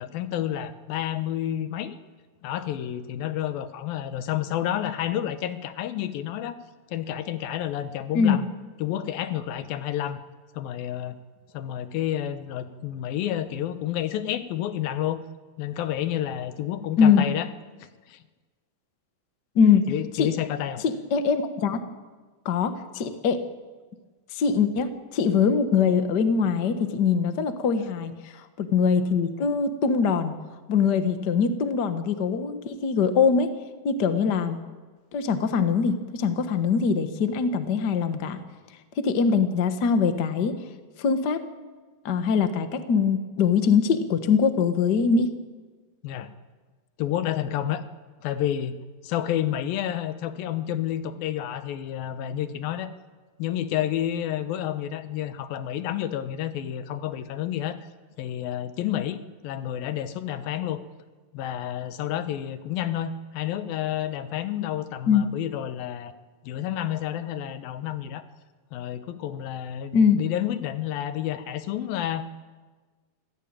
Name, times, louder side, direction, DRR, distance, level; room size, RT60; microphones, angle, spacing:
voice 1, 0.0-2.0 2.4-6.6 6.9-8.5 8.8-10.2 10.5-11.2 11.5-15.2 15.6-17.5 18.1-18.2 19.9-20.8 46.0-46.3 47.0-47.8 48.2-48.8 49.0-52.9 53.4-57.8 58.2-60.8 61.3-66.1 66.4-68.2 68.7-72.3, left 11 dB, 90° left, 11 dB, 2.9 m, -30 dB
voice 2, 20.8-21.8 22.4-23.4 24.3-30.3 30.7-33.5 33.8-34.6 35.1-38.4 39.0-40.5 41.0-41.4 42.0-45.3 65.1-65.3 69.9-70.2, left 6 dB, 55° left, 9 dB, 1.1 m, -22 dB
25.0 x 16.0 x 8.9 m, 1.4 s
omnidirectional pair, 4.0 m